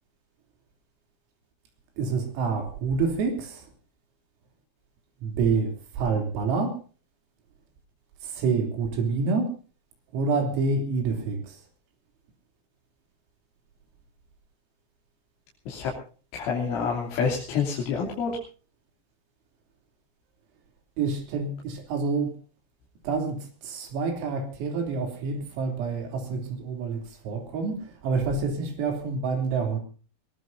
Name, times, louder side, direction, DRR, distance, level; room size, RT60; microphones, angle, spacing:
voice 1, 2.0-3.6 5.2-6.8 8.2-9.5 10.1-11.6 21.0-22.3 23.0-29.8, right 4 dB, 80° right, 5 dB, 5.9 m, -27 dB
voice 2, 16.3-18.3, left 6 dB, 70° left, -3 dB, 5.4 m, -27 dB
23.0 x 20.0 x 2.7 m, 0.37 s
omnidirectional pair, 6.0 m